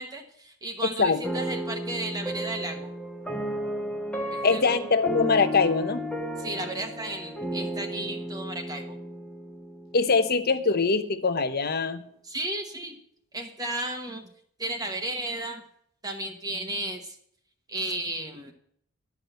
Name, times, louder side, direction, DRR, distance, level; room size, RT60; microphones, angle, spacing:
voice 1, 0.0-2.9 4.3-4.6 6.4-9.0 12.2-13.0 13.3-14.2 14.6-15.6 16.0-17.1 17.7-18.5, right 1 dB, 15° right, 3 dB, 1.1 m, -34 dB
sound 1, 1.2-10.4, equal, 5° left, 1.1 m, -34 dB
voice 2, 4.4-6.0 9.9-12.0, left 4 dB, 45° left, 11 dB, 0.9 m, -23 dB
11.5 x 5.9 x 8.0 m, 0.66 s
head